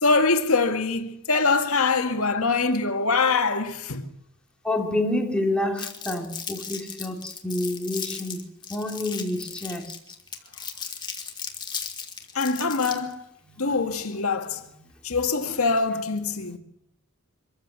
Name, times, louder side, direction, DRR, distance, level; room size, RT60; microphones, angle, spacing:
voice 1, 0.0-4.1 12.3-13.2 13.6-14.7 15.0-16.6, left 4 dB, 75° left, 1.9 m, -23 dB
voice 2, 4.6-8.4 8.7-9.9 13.5-13.6, left 1 dB, 5° left, 2.7 m, -28 dB
Crumpling crinkling, 5.8-13.1, left 6 dB, 20° left, 2.5 m, -36 dB
25.0 x 14.5 x 7.6 m
head